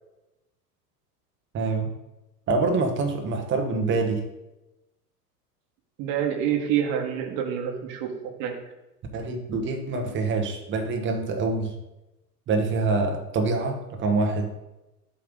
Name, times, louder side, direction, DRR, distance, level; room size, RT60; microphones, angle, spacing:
voice 1, 1.5-1.9 2.5-4.2 9.1-11.7 12.5-14.5, right 3 dB, 25° right, 4 dB, 1.1 m, -25 dB
voice 2, 6.0-8.1 8.4-8.5, right 9 dB, 40° right, 3 dB, 1.4 m, -27 dB
7.6 x 3.4 x 5.2 m, 0.97 s
figure-of-eight pair, 90°, 48 cm